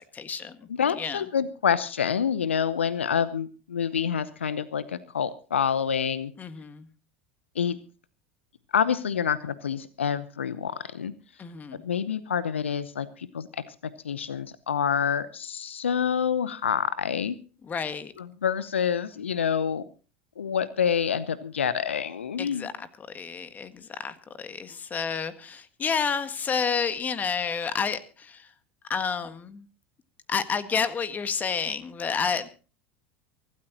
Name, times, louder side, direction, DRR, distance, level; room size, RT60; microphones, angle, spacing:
voice 1, 0.1-0.7 1.0-1.2 6.4-6.9 11.4-11.8 17.7-18.1 22.4-28.5 28.9-29.6 30.3-32.5, left 6 dB, 25° left, 11 dB, 1.7 m, -30 dB
voice 2, 0.8-6.3 7.5-7.8 8.7-11.1 11.8-13.6 14.0-17.4 18.2-19.8 20.4-22.7, left 7 dB, 80° left, 16 dB, 0.8 m, -27 dB
24.0 x 13.0 x 2.9 m, 0.36 s
figure-of-eight pair, 80°, 6 cm